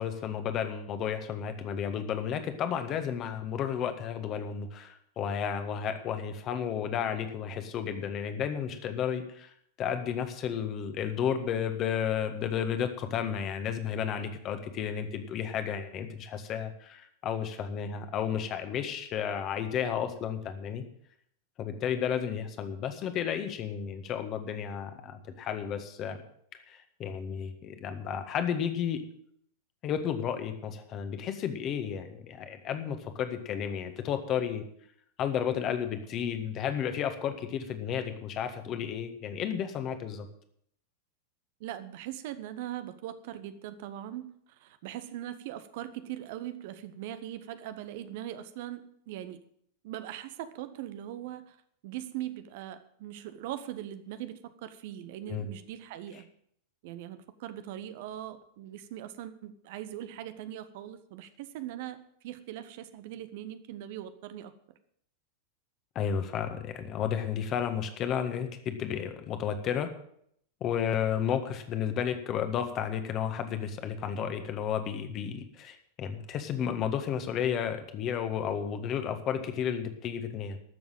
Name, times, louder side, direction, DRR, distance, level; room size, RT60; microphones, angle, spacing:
voice 1, 0.0-9.5 9.8-20.8 21.6-26.2 26.7-29.0 29.8-34.6 35.2-40.3 55.3-55.5 65.9-69.9 70.6-80.6, left 8 dB, 35° left, 8 dB, 1.7 m, -32 dB
voice 2, 41.6-49.4 49.8-51.6 51.8-56.3 56.8-64.5, right 12 dB, 50° right, 11 dB, 1.0 m, -40 dB
13.0 x 7.2 x 9.0 m, 0.68 s
figure-of-eight pair, 90°, 0 cm